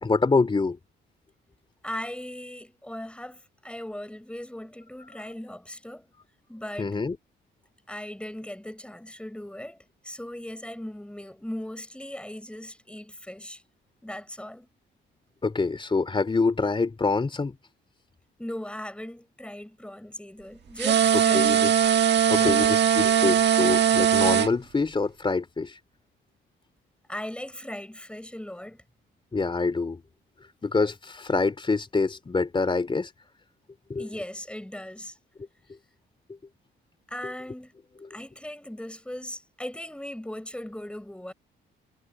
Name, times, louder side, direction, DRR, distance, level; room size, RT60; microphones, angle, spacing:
voice 1, 0.0-0.8 6.8-7.2 15.4-17.5 21.3-21.7 22.3-25.8 29.3-30.0 30.6-33.1 33.9-34.0, left 4 dB, 25° left, 3.4 m, -26 dB
voice 2, 1.8-6.1 6.5-7.0 7.9-13.6 14.0-14.7 18.4-21.6 22.0-22.6 27.1-28.8 34.0-35.2 37.1-37.7 38.1-41.3, left 1 dB, 5° left, 6.9 m, -38 dB
sound 1, 20.8-24.5, right 8 dB, 60° right, 1.4 m, -20 dB
cardioid pair, 90°, 20 cm